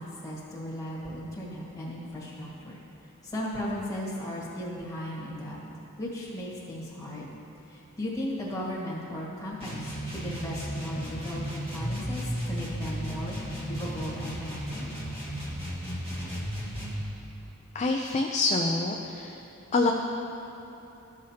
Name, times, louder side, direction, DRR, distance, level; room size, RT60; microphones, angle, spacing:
voice 1, 0.0-2.8 3.2-5.6 6.0-7.3 7.7-13.4 13.7-14.9, equal, 15° left, -6 dB, 1.7 m, -36 dB
sound 1, 9.6-17.1, equal, 25° right, 1.7 m, -34 dB
voice 2, 17.7-19.4 19.7-19.9, left 3 dB, 30° left, 1 dB, 0.4 m, -26 dB
14.0 x 6.3 x 2.8 m, 2.9 s
head